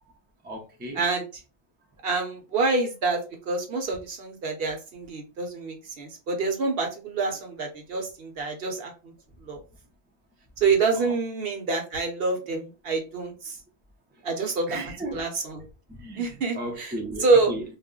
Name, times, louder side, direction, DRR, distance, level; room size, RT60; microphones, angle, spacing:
voice 1, 0.4-1.0 10.9-11.1 14.7-15.2 15.6-17.6, right 1 dB, 15° right, 0.4 m, -35 dB
voice 2, 0.9-1.3 2.0-9.1 9.4-9.6 10.6-13.6 14.2-14.8 15.1-15.6 16.1-16.9 17.2-17.5, right 4 dB, 65° right, 1.0 m, -27 dB
2.4 x 2.1 x 3.6 m
omnidirectional pair, 1.1 m